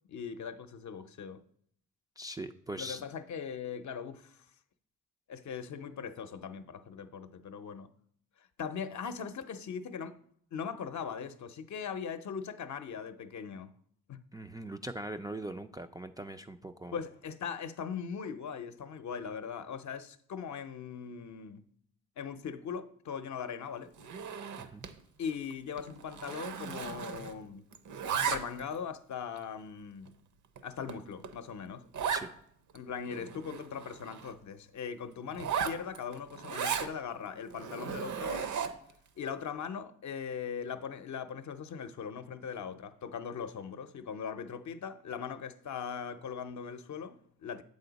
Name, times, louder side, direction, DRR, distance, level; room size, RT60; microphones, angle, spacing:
voice 1, 0.1-1.4 2.8-4.4 5.3-7.9 8.4-10.2 10.5-13.7 14.1-14.2 16.9-21.6 22.2-23.9 25.2-27.7 28.2-30.2 30.6-31.8 32.7-38.5 39.2-47.6, left 7 dB, 55° left, 0.7 m, -40 dB
voice 2, 2.2-3.0 14.3-17.0 24.6-24.9 32.1-32.3, right 1 dB, 10° right, 0.3 m, -41 dB
Zipper (clothing), 24.0-25.0 25.3-25.5 25.8-27.5 27.7-28.8 29.4-29.5 30.1-30.2 30.6-30.7 30.9-31.0 31.2-31.3 31.9-32.3 32.7-32.8 33.0-34.3 35.3-36.9 37.5-38.9, right 7 dB, 60° right, 0.7 m, -36 dB
7.7 x 5.3 x 4.0 m
cardioid pair, 70°, 34 cm